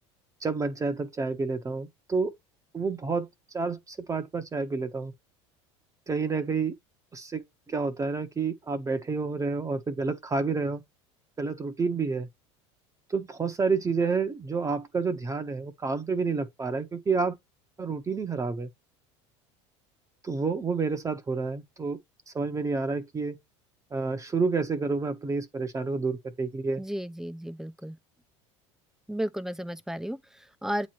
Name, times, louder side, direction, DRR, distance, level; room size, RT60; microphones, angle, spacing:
voice 1, 0.4-2.3 2.7-3.3 3.5-5.1 6.1-6.7 7.1-10.8 11.4-12.3 13.1-17.4 17.8-18.7 20.2-22.0 22.3-23.4 23.9-26.8, right 4 dB, 20° right, 1.0 m, -29 dB
voice 2, 26.8-28.0 29.1-30.9, equal, 5° right, 0.6 m, -33 dB
8.3 x 3.1 x 4.4 m
hypercardioid pair, 90°, 15 cm